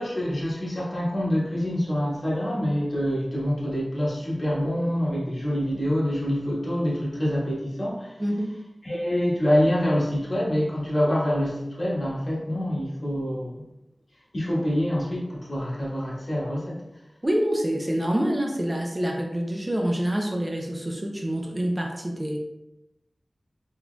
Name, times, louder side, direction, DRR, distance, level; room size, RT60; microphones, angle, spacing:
voice 1, 0.0-8.2 8.8-13.6 14.3-16.8, equal, 50° left, -6 dB, 1.3 m, -26 dB
voice 2, 8.2-8.5 17.2-22.4, equal, 30° right, 0 dB, 0.5 m, -26 dB
3.8 x 3.5 x 2.2 m, 0.91 s
wide cardioid pair, 60°, 0 cm